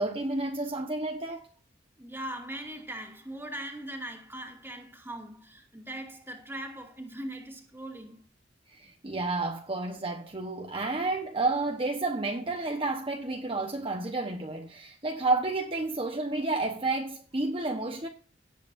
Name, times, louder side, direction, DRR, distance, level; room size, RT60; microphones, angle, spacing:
voice 1, 0.0-1.5 8.7-18.1, right 2 dB, 30° right, 1.2 m, -30 dB
voice 2, 2.0-8.2, right 1 dB, 10° right, 2.3 m, -40 dB
17.5 x 8.1 x 2.7 m
head